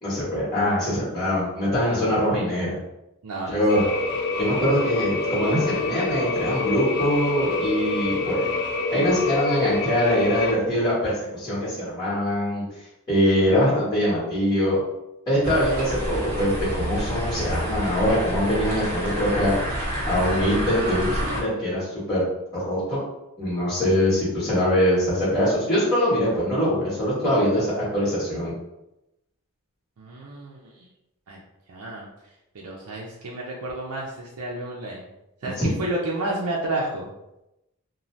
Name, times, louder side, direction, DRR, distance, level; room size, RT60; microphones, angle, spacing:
voice 1, 0.0-2.7 3.5-3.8 4.4-8.5 8.9-12.6 13.1-14.8 15.3-19.6 20.0-22.2 22.5-23.0 23.4-28.5 35.6-35.8, equal, 20° left, -9 dB, 1.2 m, -23 dB
voice 2, 3.2-4.0 30.0-30.9 31.3-31.4 31.7-32.1 32.5-35.1 35.4-37.1, right 2 dB, 80° right, -3 dB, 0.4 m, -31 dB
sound 1, 3.7-10.5, left 3 dB, 50° left, 0.4 m, -27 dB
sound 2, 15.4-21.4, equal, 40° right, 1.1 m, -28 dB
2.6 x 2.2 x 3.1 m, 0.91 s
head